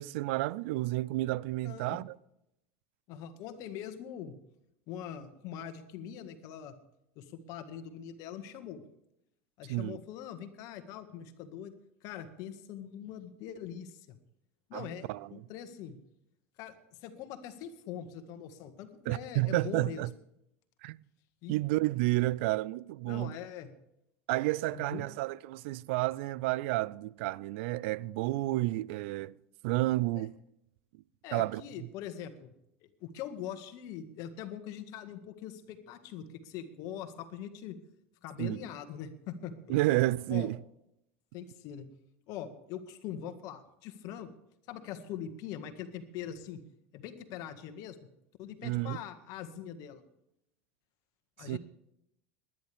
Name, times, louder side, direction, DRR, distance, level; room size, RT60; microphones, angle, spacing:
voice 1, 0.0-2.2 9.7-10.0 14.7-15.3 19.1-20.1 20.8-21.0 21.5-23.4 24.3-29.3 29.6-30.3 31.3-31.6 38.4-38.6 39.7-40.6 48.6-49.0 51.4-51.6, right 18 dB, 70° right, 0.4 m, -31 dB
voice 2, 1.6-2.0 3.1-4.4 4.9-6.7 7.1-8.8 9.6-11.7 12.0-14.2 14.7-16.0 16.6-16.7 17.0-20.1 21.4-21.5 23.0-23.7 24.7-25.1 30.1-30.3 31.2-32.5 33.0-37.8 38.2-39.8 40.3-40.5 41.3-41.9 42.3-44.3 44.7-46.6 46.9-48.0 48.4-50.0 51.4-51.6, left 9 dB, 60° left, 1.8 m, -42 dB
20.5 x 10.5 x 3.5 m
hypercardioid pair, 100°, 7 cm